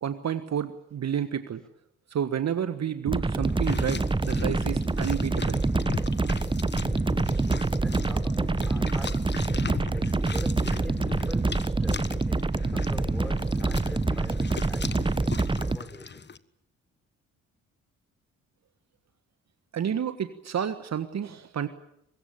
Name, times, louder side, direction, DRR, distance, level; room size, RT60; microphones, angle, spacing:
voice 1, 0.0-1.6 2.1-5.6 19.7-21.7, right 9 dB, 45° right, 11 dB, 1.5 m, -30 dB
sound 1, 3.1-15.8, right 3 dB, 15° right, 1.1 m, -26 dB
sound 2, 3.4-16.4, left 5 dB, 30° left, 1.4 m, -38 dB
voice 2, 7.4-9.5 9.9-15.4 15.7-16.3, equal, ahead, 8 dB, 5.4 m, -45 dB
24.0 x 21.5 x 8.9 m, 0.77 s
figure-of-eight pair, 40°, 37 cm